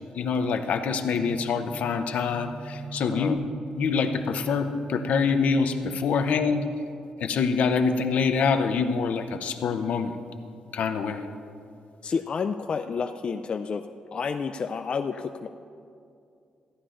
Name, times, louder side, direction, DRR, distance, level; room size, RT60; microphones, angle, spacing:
voice 1, 0.1-3.4 3.8-6.6 7.2-10.2 10.7-11.3, left 5 dB, 75° left, 7 dB, 0.7 m, -25 dB
sound 1, 1.0-6.6, right 5 dB, 5° left, 1.0 m, -40 dB
voice 2, 12.0-13.9 14.1-15.5, left 5 dB, 45° left, 7 dB, 0.3 m, -30 dB
14.0 x 9.8 x 3.8 m, 2.5 s
cardioid pair, 95°, 2 cm